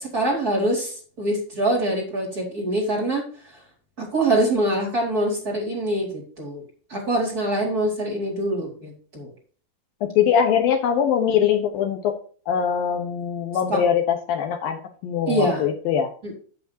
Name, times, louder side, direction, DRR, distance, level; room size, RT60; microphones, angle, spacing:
voice 1, 0.0-3.2 4.0-6.6 6.9-9.3 13.7-13.8 15.3-15.7 16.2-16.3, right 1 dB, 25° right, -2 dB, 4.6 m, -24 dB
voice 2, 10.0-12.2 12.5-16.1, left 8 dB, 70° left, 4 dB, 2.9 m, -22 dB
11.0 x 9.4 x 2.8 m, 0.42 s
omnidirectional pair, 4.5 m